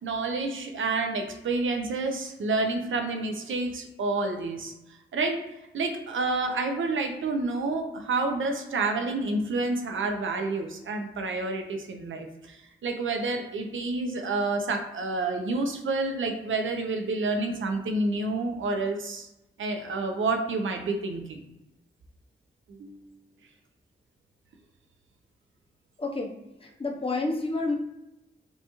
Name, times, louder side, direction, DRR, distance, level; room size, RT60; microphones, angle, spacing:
voice 1, 0.0-4.7 5.1-5.4 5.7-19.3 19.6-21.4 22.8-23.1, right 3 dB, 85° right, 4 dB, 0.6 m, -29 dB
voice 2, 26.0-27.7, left 3 dB, 30° left, 1 dB, 0.6 m, -30 dB
5.4 x 2.3 x 2.9 m, 0.95 s
wide cardioid pair, 155°, 20 cm